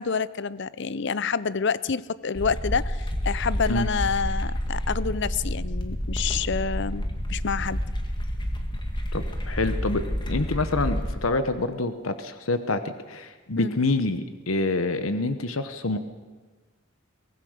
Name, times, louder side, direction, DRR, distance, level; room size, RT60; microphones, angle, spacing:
voice 1, 0.0-7.8 13.6-13.7, left 5 dB, 60° left, 18 dB, 0.6 m, -28 dB
sound 1, 2.3-11.2, equal, 20° left, 1.9 m, -29 dB
voice 2, 9.1-12.8 13.1-16.0, left 2 dB, 85° left, 10 dB, 1.1 m, -27 dB
24.0 x 18.5 x 6.6 m, 1.3 s
head